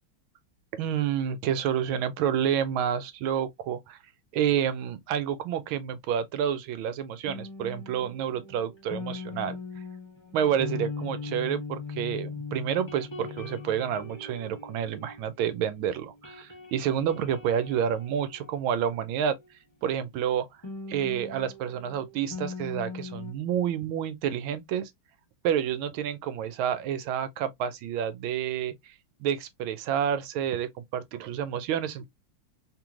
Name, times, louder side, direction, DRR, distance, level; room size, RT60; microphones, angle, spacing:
voice 1, 0.7-4.0 4.3-9.6 10.3-19.4 19.8-20.5 20.9-24.9 25.4-28.9 29.2-32.0, right 9 dB, 85° right, 1.4 m, -29 dB
sound 1, 7.3-15.7 16.0-19.5 20.6-23.3, left 4 dB, 25° left, 0.6 m, -40 dB
3.6 x 3.0 x 2.4 m
omnidirectional pair, 2.2 m